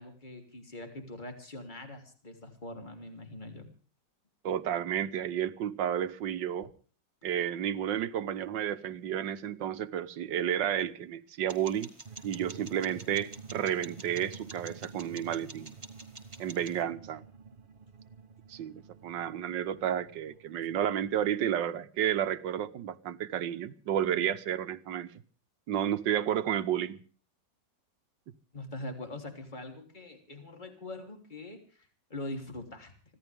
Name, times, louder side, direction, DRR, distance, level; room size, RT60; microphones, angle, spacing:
voice 1, 0.0-3.7 28.5-32.9, left 1 dB, 25° left, 3.3 m, -43 dB
voice 2, 4.4-6.7 7.2-11.9 12.2-15.7 16.4-17.2 18.5-25.1 25.7-27.0, right 10 dB, 85° right, 1.6 m, -31 dB
sound 1, 11.5-16.8, right 2 dB, 15° right, 2.1 m, -49 dB
sound 2, 12.1-21.2, right 5 dB, 40° right, 0.9 m, -49 dB
25.0 x 16.0 x 3.5 m
omnidirectional pair, 1.9 m